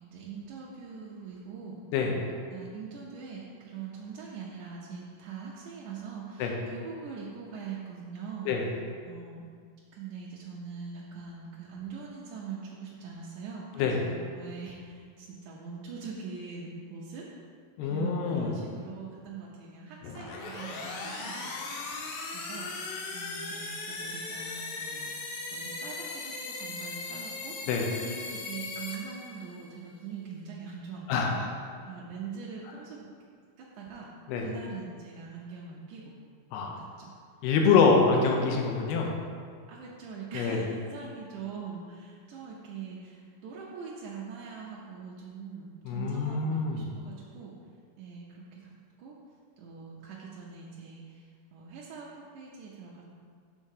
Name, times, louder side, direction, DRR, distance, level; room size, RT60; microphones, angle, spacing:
voice 1, 0.0-1.8 2.0-8.5 9.0-9.4 9.9-17.3 17.8-21.4 22.3-22.7 23.1-25.1 25.5-27.7 28.0-31.4 31.9-33.1 33.6-34.1 34.4-36.2 36.6-37.1 39.7-47.5 48.0-48.7 49.0-49.2 49.6-53.0, right 5 dB, 80° right, -5 dB, 1.7 m, -43 dB
voice 2, 17.8-18.5 27.7-27.9 31.1-31.5 34.3-34.4 36.5-36.7 37.4-39.1 40.3-40.6 45.9-46.9, left 5 dB, 90° left, 1 dB, 2.8 m, -25 dB
sound 1, 20.0-29.7, left 3 dB, 70° left, 2.4 m, -38 dB
7.9 x 3.6 x 6.5 m, 2.1 s
omnidirectional pair, 4.4 m